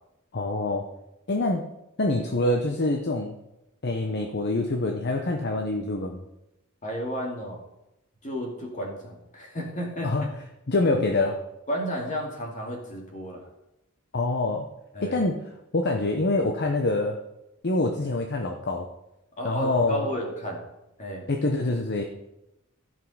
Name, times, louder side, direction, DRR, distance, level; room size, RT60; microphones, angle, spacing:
voice 1, 0.3-0.8 1.3-1.7 2.0-3.3 3.8-6.2 10.0-10.3 10.7-11.4 14.1-14.7 15.0-15.4 15.7-17.2 17.6-18.9 19.4-20.1 21.3-22.0, left 2 dB, 55° left, 3 dB, 0.9 m, -25 dB
voice 2, 6.8-7.6 8.2-10.1 11.7-13.5 14.9-15.2 19.4-20.6 21.0-21.3, equal, 35° left, 0 dB, 2.6 m, -32 dB
14.0 x 5.5 x 5.7 m, 0.90 s
head